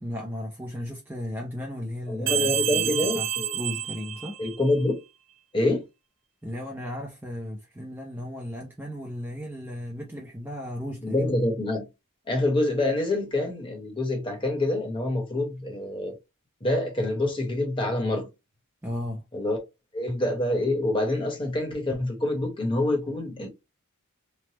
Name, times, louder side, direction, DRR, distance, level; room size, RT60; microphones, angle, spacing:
voice 1, 0.0-4.4 6.4-11.3 18.8-19.3, left 1 dB, 10° right, 0.5 m, -35 dB
voice 2, 2.1-3.6 4.4-5.0 5.5-5.8 11.0-11.9 12.3-16.1 16.6-18.3 19.3-19.6 19.9-23.5, left 1 dB, 25° left, 1.0 m, -26 dB
sound 1, 2.3-4.8, right 11 dB, 55° right, 0.6 m, -29 dB
3.3 x 2.0 x 2.8 m
head